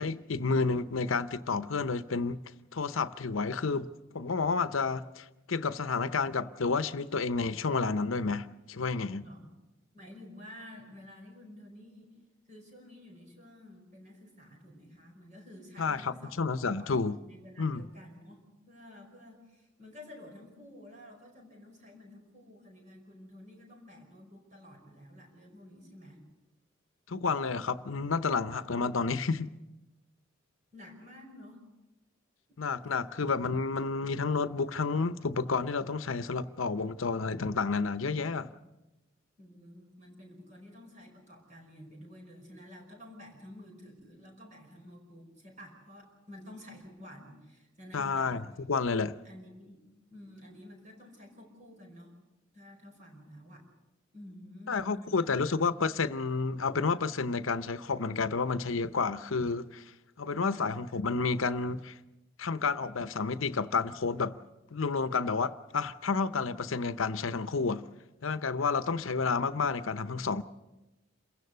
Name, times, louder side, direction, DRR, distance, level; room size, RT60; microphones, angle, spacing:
voice 1, 0.0-2.4 2.7-3.9 4.1-9.3 15.8-17.2 17.6-17.8 27.1-29.5 32.6-38.5 47.9-48.4 48.7-49.2 54.7-59.8 60.2-62.0 62.4-64.4 64.7-67.8 68.2-70.4, left 4 dB, 85° left, 0.8 m, -30 dB
voice 2, 9.2-9.6 9.9-12.1 12.5-16.4 16.7-17.0 17.3-26.2 30.7-31.6 32.5-32.6 32.8-32.9 39.4-48.5 49.2-49.8 50.1-52.1 52.5-53.7 54.1-55.6 60.4-60.7, left 1 dB, 35° right, 5.2 m, -51 dB
28.0 x 16.0 x 6.8 m
head